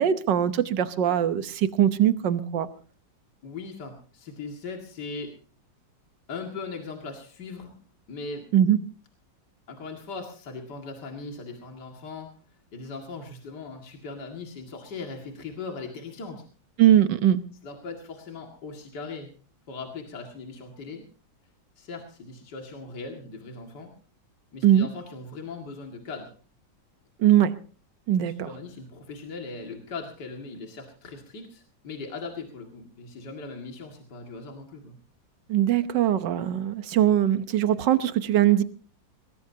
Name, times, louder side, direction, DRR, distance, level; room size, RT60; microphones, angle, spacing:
voice 1, 0.0-2.7 8.5-8.8 16.8-17.4 24.6-24.9 27.2-27.5 28.1-28.5 35.5-38.6, right 11 dB, 75° right, 12 dB, 1.6 m, -21 dB
voice 2, 3.4-5.3 6.3-7.7 8.1-8.5 9.7-12.3 12.7-16.4 17.6-19.3 19.7-21.0 21.8-23.9 24.5-26.3 28.2-35.0, left 4 dB, 65° left, 2 dB, 2.7 m, -39 dB
20.5 x 20.0 x 2.8 m, 0.39 s
omnidirectional pair, 2.0 m